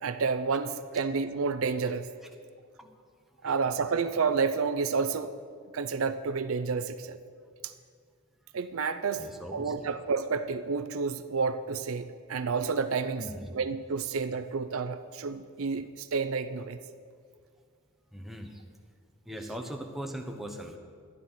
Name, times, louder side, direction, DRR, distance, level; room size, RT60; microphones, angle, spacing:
voice 1, 0.0-2.1 3.4-5.3 5.7-7.2 7.6-7.7 8.5-16.8, right 5 dB, 70° right, 11 dB, 0.5 m, -30 dB
voice 2, 9.2-9.9 13.2-13.5 18.1-18.5 19.3-20.8, equal, ahead, 2 dB, 0.9 m, -39 dB
12.0 x 10.5 x 5.6 m, 2.1 s
head